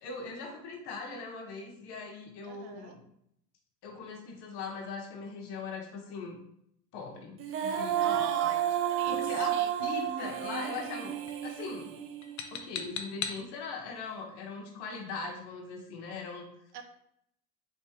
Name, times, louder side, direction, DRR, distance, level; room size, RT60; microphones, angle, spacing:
voice 1, 0.0-3.0 3.8-6.4 6.9-8.2 9.1-11.1 11.4-11.9 12.5-16.5, left 4 dB, 50° left, -1 dB, 1.1 m, -40 dB
voice 2, 2.4-3.0 8.0-9.7 16.7-16.8, right 8 dB, 50° right, 6 dB, 0.7 m, -41 dB
Female singing, 7.4-12.6, right 10 dB, 30° right, 0.4 m, -31 dB
sound 1, 9.1-9.3 10.1-10.5 10.7-11.0 11.3-11.7 12.2-13.5, left 7 dB, 35° left, 0.5 m, -40 dB
3.3 x 3.2 x 2.8 m, 0.73 s
hypercardioid pair, 80°, 49 cm